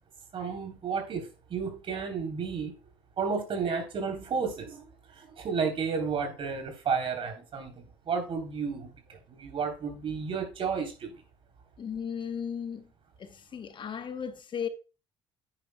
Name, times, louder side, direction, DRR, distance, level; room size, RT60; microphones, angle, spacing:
voice 1, 0.3-2.7 3.2-4.8 5.1-8.9 9.3-11.1, right 5 dB, 50° right, 3.4 m, -32 dB
voice 2, 11.8-12.8 13.2-14.7, left 7 dB, 45° left, 1.0 m, -35 dB
10.0 x 9.8 x 2.2 m
supercardioid pair, 70°, 11 cm